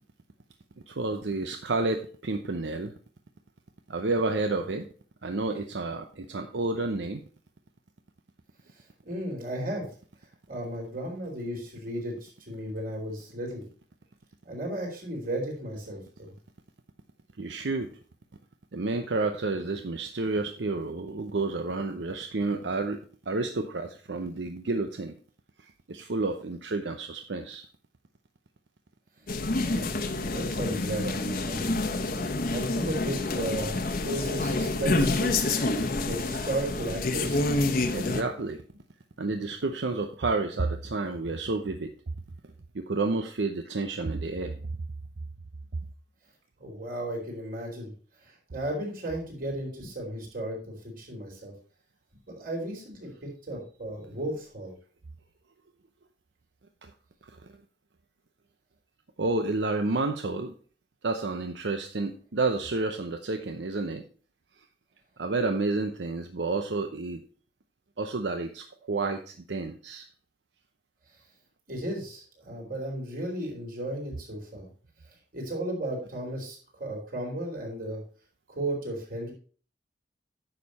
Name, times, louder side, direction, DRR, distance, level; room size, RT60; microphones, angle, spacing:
voice 1, 0.9-2.9 3.9-4.9 5.2-7.2 17.4-17.9 18.7-25.1 25.6-27.7 37.9-38.6 39.2-41.9 42.7-44.6 56.8-56.9 59.2-60.5 61.0-64.0 65.2-67.2 68.0-70.1, right 3 dB, 90° right, 7 dB, 0.8 m, -30 dB
voice 2, 9.0-9.8 10.5-13.6 14.4-16.3 29.6-30.0 30.3-31.7 32.5-33.8 34.0-37.5 46.6-47.9 48.2-51.5 52.3-54.7 71.7-74.7 75.3-78.0 78.5-79.3, right 1 dB, 55° right, -1 dB, 4.3 m, -35 dB
sound 1, 29.3-38.2, left 2 dB, 55° left, 1.1 m, -28 dB
9.9 x 6.7 x 4.2 m, 0.41 s
head